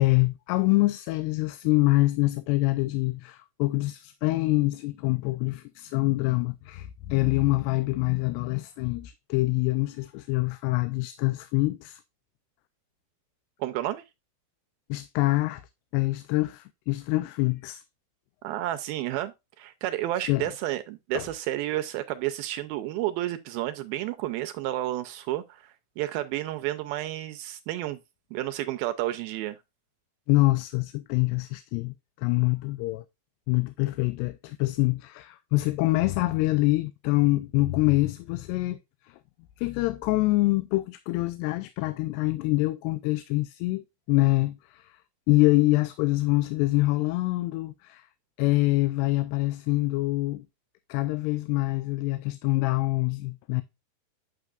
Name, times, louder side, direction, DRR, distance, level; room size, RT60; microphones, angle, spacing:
voice 1, 0.0-12.0 14.9-15.6 15.9-17.8 20.3-20.5 21.1-21.3 30.3-33.0 33.5-38.8 39.1-39.2 39.6-44.9 45.3-48.1 48.4-50.5 50.9-53.6, left 20 dB, 90° left, 2.7 m, -25 dB
voice 2, 13.6-14.0 18.4-28.0 28.3-29.6, right 14 dB, 80° right, 2.2 m, -31 dB
10.0 x 6.5 x 2.4 m
omnidirectional pair, 4.7 m